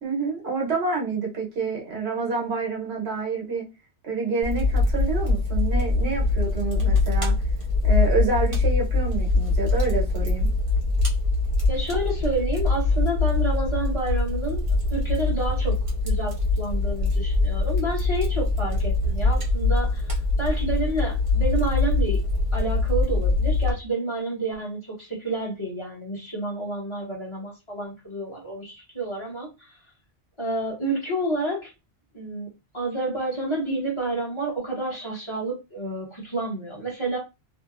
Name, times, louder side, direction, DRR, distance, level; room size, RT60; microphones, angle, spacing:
voice 1, 0.0-3.7 4.0-7.4 7.8-10.5, right 4 dB, 65° right, -1 dB, 1.2 m, -28 dB
Fire, 4.4-23.7, left 3 dB, 35° right, 0.7 m, -23 dB
voice 2, 11.7-14.6 14.9-15.8 16.0-20.1 20.4-22.2 22.5-29.8 30.4-31.7 32.1-32.5 32.7-37.2, right 2 dB, 25° left, -4 dB, 1.1 m, -29 dB
2.8 x 2.4 x 2.4 m, 0.26 s
omnidirectional pair, 1.2 m